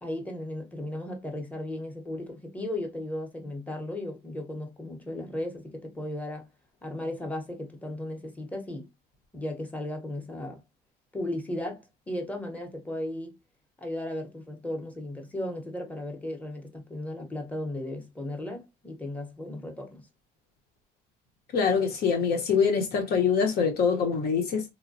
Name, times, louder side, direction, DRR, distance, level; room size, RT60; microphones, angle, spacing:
voice 1, 0.0-6.5 6.8-8.9 9.3-10.6 11.1-13.3 13.8-20.0, left 1 dB, 10° left, 0.8 m, -35 dB
voice 2, 21.5-24.6, left 6 dB, 65° left, 0.9 m, -24 dB
3.1 x 2.1 x 2.6 m
cardioid pair, 110°, 17 cm